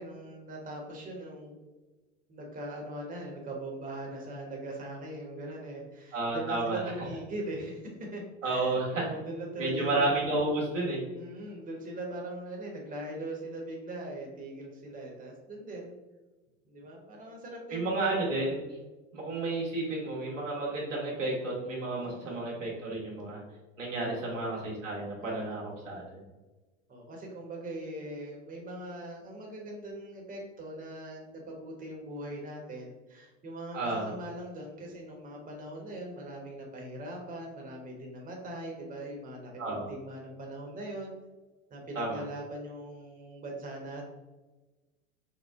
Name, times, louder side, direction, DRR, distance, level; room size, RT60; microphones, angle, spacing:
voice 1, 0.0-1.7 2.3-10.0 11.1-15.9 16.6-18.0 22.0-22.4 24.0-24.5 25.2-25.7 26.9-41.1 41.7-44.0, right 1 dB, 20° right, 0 dB, 1.0 m, -41 dB
voice 2, 6.1-6.8 8.4-9.0 9.6-11.0 17.7-18.6 19.1-23.4 23.8-26.2 33.7-34.1 39.6-39.9 41.9-42.2, right 2 dB, 90° right, -4 dB, 1.4 m, -31 dB
4.5 x 2.1 x 3.6 m, 1.2 s
hypercardioid pair, 85°, 37 cm